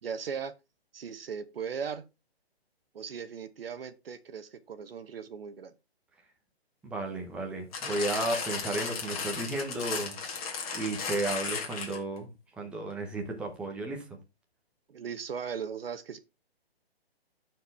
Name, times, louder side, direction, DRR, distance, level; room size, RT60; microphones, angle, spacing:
voice 1, 0.0-0.5 0.9-2.0 2.9-5.7 14.9-16.2, right 6 dB, 65° right, 1.0 m, -38 dB
voice 2, 6.8-14.2, right 2 dB, 5° right, 0.8 m, -34 dB
sound 1, 7.7-12.2 12.9-13.0, left 5 dB, 35° left, 2.0 m, -35 dB
12.5 x 4.7 x 3.4 m
hypercardioid pair, 160°, 31 cm